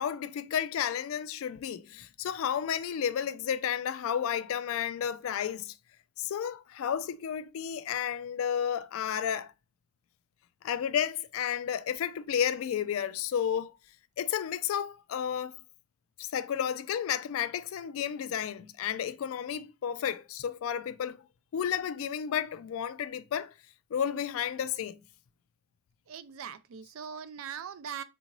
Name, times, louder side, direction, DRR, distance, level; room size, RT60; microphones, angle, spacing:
voice 1, 0.0-5.7 6.2-9.5 10.6-13.8 14.2-15.6 16.2-21.2 21.5-23.5 23.9-25.0, left 8 dB, 85° left, 0.3 m, -32 dB
voice 2, 26.1-28.0, right 7 dB, 80° right, 0.4 m, -41 dB
3.7 x 2.5 x 2.9 m
head